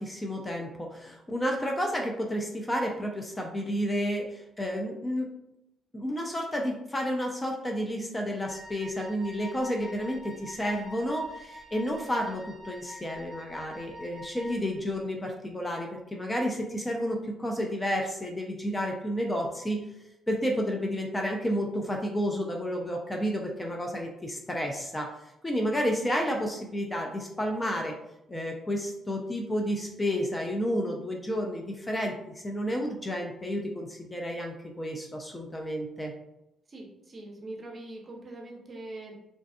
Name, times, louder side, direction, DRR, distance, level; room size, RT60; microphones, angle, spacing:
voice 1, 0.0-5.3 5.9-19.8 20.3-27.9 28.3-36.1, equal, 15° left, 1 dB, 0.4 m, -31 dB
Wind instrument woodwind instrument, 8.5-14.8, left 1 dB, 75° left, 0.7 m, -46 dB
voice 2, 36.7-39.2, right 2 dB, 35° right, 0 dB, 0.6 m, -42 dB
2.6 x 2.3 x 2.3 m, 0.84 s
cardioid pair, 90°, 0 cm